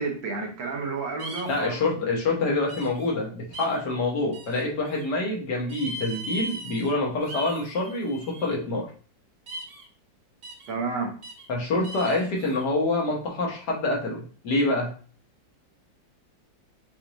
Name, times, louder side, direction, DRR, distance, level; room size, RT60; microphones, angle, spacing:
voice 1, 0.0-2.1 10.7-11.1, right 4 dB, 85° right, 2 dB, 1.8 m, -31 dB
sound 1, 1.2-1.7 2.7-3.1 3.5-3.8 4.3-5.1 5.7-6.9 7.2-8.5 9.5-9.9 10.4-10.7 11.2-11.5 11.8-12.6, right 1 dB, 55° right, 1.4 m, -39 dB
voice 2, 1.5-8.9 11.5-14.9, left 2 dB, 60° left, -1 dB, 1.7 m, -26 dB
6.7 x 2.6 x 3.0 m, 0.41 s
omnidirectional pair, 2.1 m